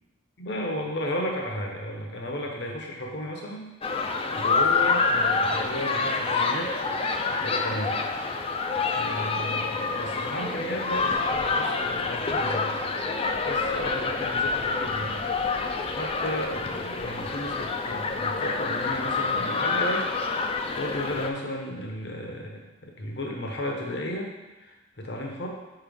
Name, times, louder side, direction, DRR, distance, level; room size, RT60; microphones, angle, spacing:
voice 1, 0.4-6.7 7.4-8.0 8.9-20.1 20.7-24.3 24.6-25.5, equal, 65° left, 0 dB, 1.0 m, -34 dB
sound 1, 3.8-21.3, left 4 dB, 30° left, 0.4 m, -27 dB
5.8 x 5.3 x 3.6 m, 1.1 s
head